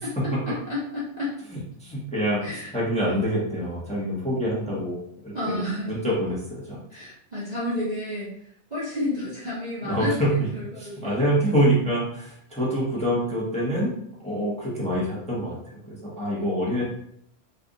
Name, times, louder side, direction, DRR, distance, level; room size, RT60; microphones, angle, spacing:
voice 1, 0.0-1.3 2.4-2.7 5.3-5.9 6.9-8.4 8.7-10.1 10.6-11.5 16.1-16.7, left 1 dB, 35° right, -8 dB, 0.8 m, -31 dB
voice 2, 1.8-2.4 2.7-5.0 5.2-5.6 5.9-6.8 9.8-10.5 10.8-13.9 14.2-16.8, equal, 5° left, -6 dB, 0.8 m, -25 dB
3.3 x 2.5 x 3.8 m, 0.70 s
omnidirectional pair, 1.5 m